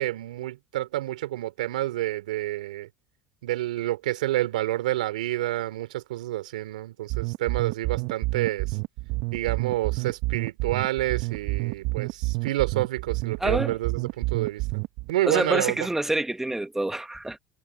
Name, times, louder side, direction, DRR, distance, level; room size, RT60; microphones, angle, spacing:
voice 1, 0.0-2.9 3.4-8.8 9.3-14.8 15.1-15.9, right 15 dB, 80° right, 3.3 m, -29 dB
sound 1, 7.1-15.1, right 24 dB, 65° right, 1.2 m, -29 dB
voice 2, 13.4-13.8 15.3-17.4, right 1 dB, 10° right, 2.0 m, -27 dB
hypercardioid pair, 75°, 4 cm